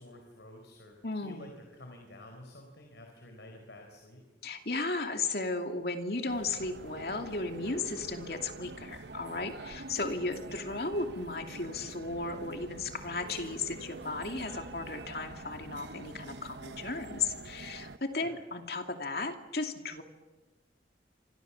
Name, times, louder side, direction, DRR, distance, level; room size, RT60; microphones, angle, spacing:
voice 1, 0.0-4.3 18.1-18.4, left 1 dB, 80° left, 3 dB, 4.5 m, -50 dB
voice 2, 1.0-1.5 4.4-20.0, left 3 dB, 60° left, 5 dB, 2.6 m, -35 dB
sound 1, 6.3-18.0, right 3 dB, 75° right, 1.0 m, -46 dB
27.5 x 25.5 x 7.2 m, 1.2 s
head